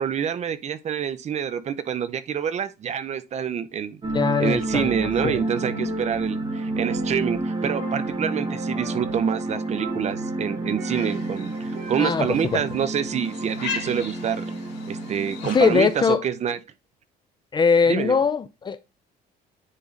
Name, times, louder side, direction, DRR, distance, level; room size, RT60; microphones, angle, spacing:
voice 1, 0.0-4.0 4.4-14.5 14.9-16.6 17.9-18.2, right 8 dB, 40° right, 0.6 m, -27 dB
sound 1, 4.0-16.0, right 2 dB, 25° right, 1.4 m, -30 dB
voice 2, 4.1-4.9 5.2-5.4 12.0-12.3 12.5-12.6 15.5-16.2 17.5-18.8, left 5 dB, 25° left, 0.4 m, -21 dB
Percussion, 4.8-5.4 5.8-7.5 7.8-8.5 8.8-9.3 9.8-11.3 11.8-12.4, right 7 dB, 65° right, 1.0 m, -38 dB
sound 2, 10.8-16.1, left 6 dB, 80° left, 2.1 m, -38 dB
9.7 x 4.0 x 2.5 m
cardioid pair, 110°, 17 cm